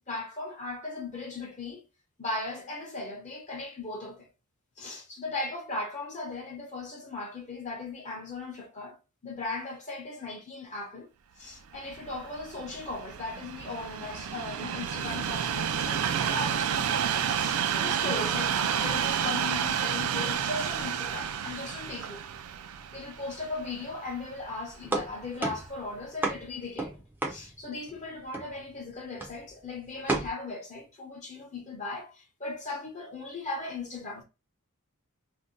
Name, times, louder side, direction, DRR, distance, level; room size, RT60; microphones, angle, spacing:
voice 1, 0.1-1.8 2.2-4.3 4.8-9.0 9.2-11.1 11.4-22.2 22.9-26.9 27.2-34.2, left 3 dB, 35° left, 0.7 m, -38 dB
Train, 11.7-25.0 25.6-25.8, right 8 dB, 75° right, 0.4 m, -30 dB
sound 1, 24.8-28.0 28.3-28.8 29.2-29.5 30.1-30.3, right 2 dB, 10° right, 0.5 m, -32 dB
2.6 x 2.1 x 3.8 m
head